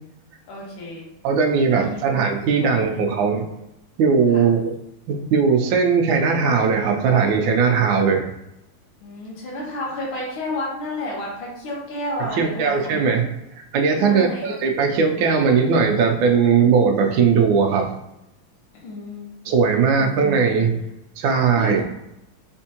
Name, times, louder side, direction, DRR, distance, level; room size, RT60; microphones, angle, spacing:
voice 1, 0.5-1.1 1.8-2.1 2.6-3.0 4.3-4.5 9.0-12.9 14.0-14.6 18.7-19.3 19.7-20.4 21.6-21.8, left 1 dB, 80° left, -5 dB, 2.0 m, -31 dB
voice 2, 1.2-3.5 4.0-4.7 5.1-8.3 12.3-13.3 13.7-17.9 19.4-20.8 21.2-21.8, right 5 dB, 75° right, 3 dB, 1.3 m, -19 dB
4.4 x 3.4 x 2.8 m, 0.85 s
omnidirectional pair, 2.2 m